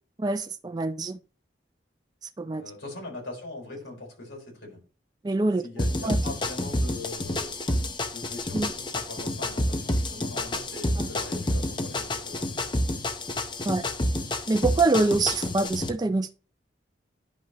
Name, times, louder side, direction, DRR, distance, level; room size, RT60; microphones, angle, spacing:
voice 1, 0.2-1.2 2.4-2.6 5.2-5.6 6.0-6.2 8.5-8.7 11.0-11.1 13.7-13.8 14.5-16.4, right 3 dB, 20° right, 0.4 m, -25 dB
voice 2, 2.6-4.8 5.6-7.6 8.1-12.9, left 2 dB, 90° left, 4.2 m, -41 dB
sound 1, 5.8-15.9, left 1 dB, 25° left, 0.6 m, -29 dB
10.5 x 5.6 x 2.9 m
head